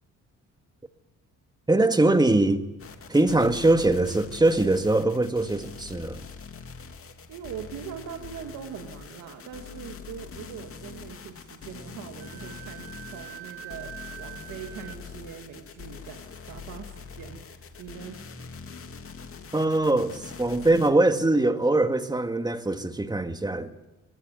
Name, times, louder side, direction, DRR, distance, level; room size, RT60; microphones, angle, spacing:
voice 1, 1.7-2.6 3.1-6.2 19.5-23.7, right 2 dB, 15° right, 1.9 m, -22 dB
sound 1, 2.8-20.9, left 5 dB, 45° left, 2.6 m, -43 dB
voice 2, 7.3-17.5 17.8-18.2, right 8 dB, 85° right, 2.2 m, -42 dB
Wind instrument woodwind instrument, 12.2-15.0, right 13 dB, 60° right, 2.5 m, -44 dB
23.0 x 19.5 x 9.3 m
cardioid pair, 90°, 30 cm